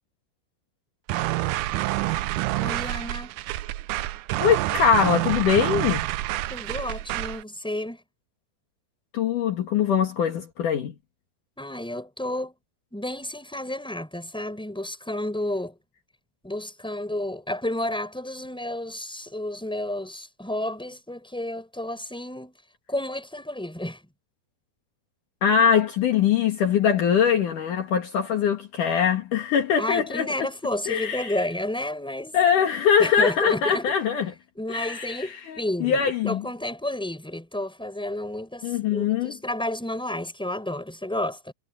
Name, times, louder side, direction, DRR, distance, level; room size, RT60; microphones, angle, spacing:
sound 1, 1.1-7.4, right 16 dB, 80° right, 1.9 m, -28 dB
voice 1, 2.6-3.3 6.5-8.0 11.6-12.5 12.9-15.8 16.4-22.5 22.9-24.0 29.8-32.4 33.0-33.9 34.6-41.5, left 1 dB, ahead, 6.0 m, -31 dB
voice 2, 4.4-6.1 9.1-10.9 25.4-30.3 30.9-31.3 32.3-34.3 34.7-36.4 38.6-39.3, left 7 dB, 60° left, 3.2 m, -22 dB
omnidirectional pair, 4.2 m